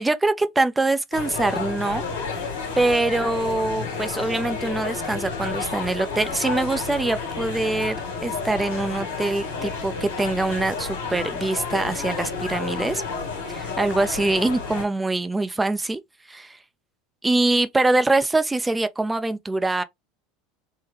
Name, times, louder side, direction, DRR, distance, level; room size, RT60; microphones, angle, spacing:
voice 1, 0.0-2.0 2.8-13.0 13.5-16.0 16.3-16.6 17.2-19.8, right 2 dB, 10° right, 0.5 m, -24 dB
sound 1, 1.1-14.9, left 4 dB, 85° left, 1.4 m, -31 dB
3.6 x 2.2 x 3.2 m
hypercardioid pair, 85°, 0 cm